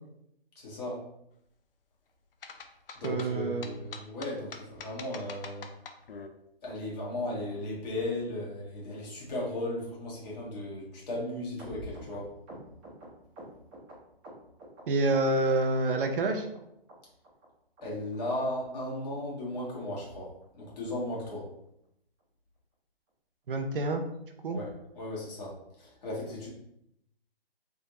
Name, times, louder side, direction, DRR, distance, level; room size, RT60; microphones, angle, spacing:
voice 1, 0.5-1.0 3.0-5.7 6.6-12.3 17.8-20.3 20.5-21.4 24.5-24.7 24.9-25.5 25.8-26.5, left 1 dB, 40° left, -5 dB, 1.5 m, -36 dB
sound 1, 2.4-6.3, left 5 dB, 65° left, 0.5 m, -44 dB
voice 2, 3.0-3.7 14.9-16.5 23.5-24.0 24.4-24.6, right 2 dB, 60° right, 4 dB, 0.6 m, -27 dB
sound 2, 11.6-14.8 15.1-15.7 16.0-16.6 16.9-17.0 17.2-17.5 17.8-17.9 18.1-18.3 18.6-18.7 19.0-19.2 19.5-19.6 19.9-20.1 20.4-20.5 20.8-21.0 21.3-21.4, right 1 dB, 15° right, 0.8 m, -47 dB
3.5 x 2.6 x 2.9 m, 0.78 s
hypercardioid pair, 145°, 30 cm